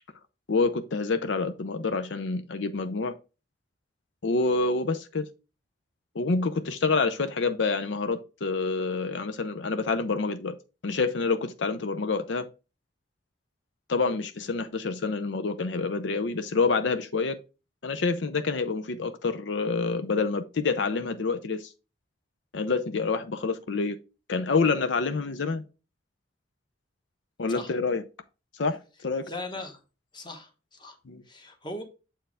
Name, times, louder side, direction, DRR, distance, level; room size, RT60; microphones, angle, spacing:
voice 1, 0.5-3.1 4.2-5.3 6.1-10.6 10.8-12.5 13.9-17.4 17.8-21.7 22.5-24.0 24.3-25.6 27.4-28.0 28.6-29.2 31.1-31.2, left 4 dB, 80° left, 0.6 m, -27 dB
voice 2, 29.2-29.8 30.1-31.0 31.3-31.8, left 2 dB, 25° left, 1.1 m, -39 dB
7.4 x 4.6 x 3.4 m
head